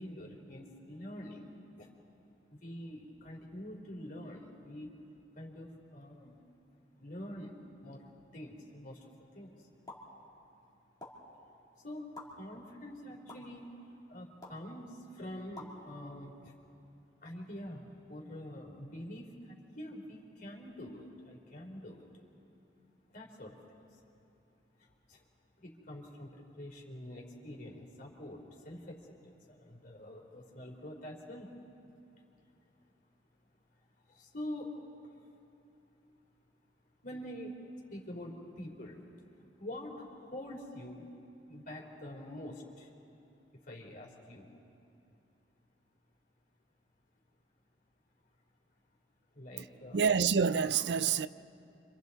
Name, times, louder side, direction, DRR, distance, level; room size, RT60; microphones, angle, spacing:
voice 1, 0.0-1.5 1.8-1.9 2.5-4.9 5.4-6.4 7.0-8.1 8.3-9.7 11.8-12.0 12.4-13.7 14.1-16.5 17.2-22.1 23.1-23.6 24.8-25.2 25.6-31.5 34.1-34.8 35.0-35.1 37.0-37.6 37.9-39.0 39.6-41.1 41.5-42.9 43.6-44.5 49.3-50.1, left 1 dB, 50° left, 3.5 m, -46 dB
sound 1, 9.9-10.0 11.0-11.1 12.1-12.2 13.3-13.4 14.4-14.6 15.6-15.7, left 2 dB, 20° left, 3.1 m, -46 dB
voice 2, 49.9-51.3, right 6 dB, 75° right, 0.5 m, -27 dB
29.5 x 26.0 x 4.1 m
head